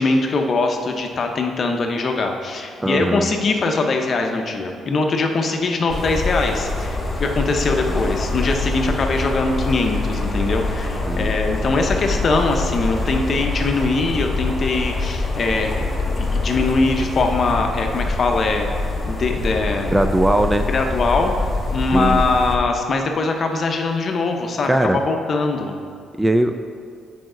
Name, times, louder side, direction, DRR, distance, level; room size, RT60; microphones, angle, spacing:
voice 1, 0.0-19.9 20.7-25.7, left 3 dB, 50° left, 3 dB, 0.7 m, -22 dB
voice 2, 2.8-3.3 11.1-11.3 19.9-20.7 21.9-22.2 24.7-25.0 26.2-26.5, right 1 dB, 10° right, 8 dB, 0.3 m, -19 dB
sound 1, 5.9-22.6, left 2 dB, 25° left, 1.1 m, -24 dB
7.6 x 5.0 x 3.8 m, 2.2 s
cardioid pair, 90°, 0 cm